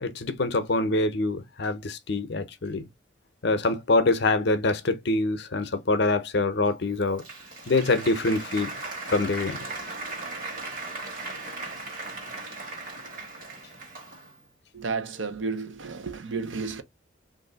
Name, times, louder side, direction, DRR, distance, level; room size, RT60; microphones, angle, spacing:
voice 1, 0.0-2.9 3.4-7.2 7.7-8.7 9.1-9.6, left 2 dB, 55° left, 0.6 m, -25 dB
Applause, 6.8-14.4, right 2 dB, 45° right, 1.3 m, -37 dB
voice 2, 14.7-16.8, right 4 dB, 70° right, 0.7 m, -32 dB
3.2 x 2.6 x 3.8 m
head